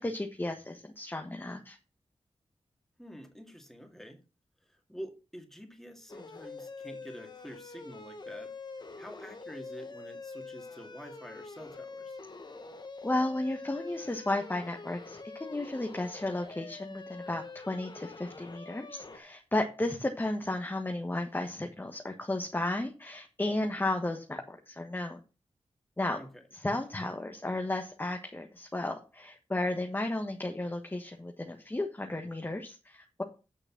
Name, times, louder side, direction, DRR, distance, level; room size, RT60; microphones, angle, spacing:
voice 1, 0.0-1.8 13.0-25.2 26.0-26.2 26.5-33.2, left 2 dB, 20° left, 3 dB, 1.4 m, -33 dB
voice 2, 3.0-4.2 4.6-8.5 9.0-12.2 26.1-26.4, equal, 5° left, 4 dB, 2.4 m, -47 dB
sound 1, 6.1-19.2, left 3 dB, 45° left, 1.3 m, -45 dB
8.7 x 6.5 x 6.1 m, 0.31 s
wide cardioid pair, 85°, 11 cm